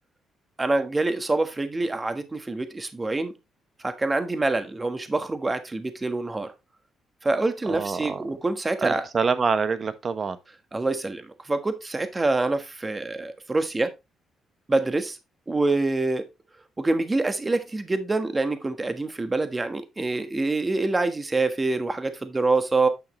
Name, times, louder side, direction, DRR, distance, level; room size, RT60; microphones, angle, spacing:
voice 1, 0.6-3.3 3.8-6.5 7.2-9.1 10.7-11.2 11.5-13.9 14.7-15.2 15.5-16.3 16.8-22.9, right 2 dB, 20° right, 1.3 m, -26 dB
voice 2, 7.7-8.2 8.8-10.4, right 5 dB, 40° right, 1.0 m, -26 dB
9.4 x 6.4 x 3.0 m
cardioid pair, 90°, 0 cm